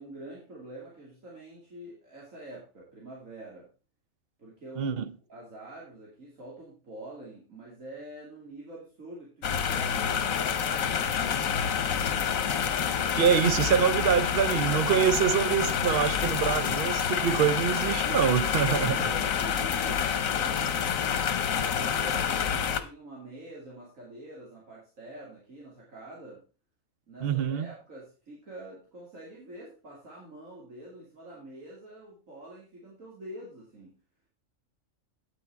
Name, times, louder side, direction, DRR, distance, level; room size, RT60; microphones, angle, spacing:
voice 1, 0.0-3.7 4.4-5.0 5.3-12.0 18.5-20.9 21.4-26.4 27.1-33.9, right 1 dB, 75° right, 3.0 m, -45 dB
voice 2, 4.8-5.1 13.1-19.0 27.2-27.7, right 8 dB, 55° right, 0.8 m, -25 dB
sound 1, 9.4-22.8, left 8 dB, 85° left, 1.3 m, -28 dB
9.0 x 8.4 x 4.5 m
omnidirectional pair, 1.4 m